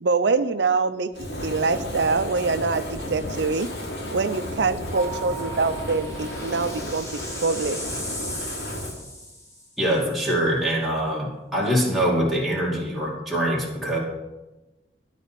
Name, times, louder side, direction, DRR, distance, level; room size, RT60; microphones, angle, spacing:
voice 1, 0.0-1.1 1.4-3.7 4.1-7.1 7.4-7.8, right 4 dB, 75° right, 12 dB, 0.6 m, -24 dB
Fire, 1.1-9.0, equal, 70° left, 2.5 m, -33 dB
Keyboard (musical), 5.0-7.4, right 6 dB, 45° right, 0.9 m, -40 dB
sound 1, 5.2-9.9, left 1 dB, 15° left, 1.8 m, -37 dB
voice 2, 9.8-14.0, equal, ahead, -5 dB, 2.4 m, -24 dB
12.5 x 4.2 x 7.5 m, 1.1 s
head